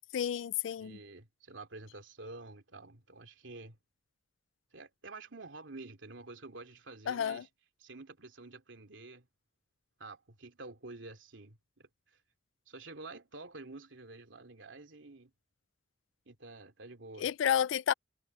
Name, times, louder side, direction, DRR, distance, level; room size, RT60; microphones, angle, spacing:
voice 1, 0.1-1.0 7.1-7.4 17.2-17.9, left 9 dB, 85° left, 0.3 m, -31 dB
voice 2, 0.8-3.8 4.7-7.5 7.8-9.3 10.0-11.9 12.7-15.3 16.3-17.3, right 3 dB, 85° right, 2.7 m, -49 dB
head